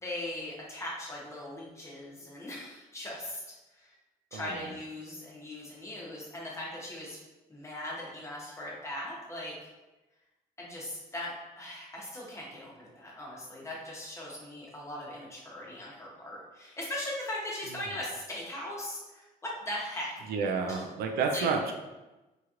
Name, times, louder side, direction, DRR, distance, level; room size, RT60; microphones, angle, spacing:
voice 1, 0.0-3.4 3.7-4.0 4.3-7.2 7.5-9.5 10.6-20.1 20.7-20.8 21.3-21.5, left 1 dB, 20° left, -4 dB, 0.9 m, -39 dB
voice 2, 4.3-4.7 20.3-21.7, right 5 dB, 85° right, 3 dB, 0.4 m, -30 dB
3.0 x 2.9 x 2.4 m, 1.1 s
cardioid pair, 120°, 15 cm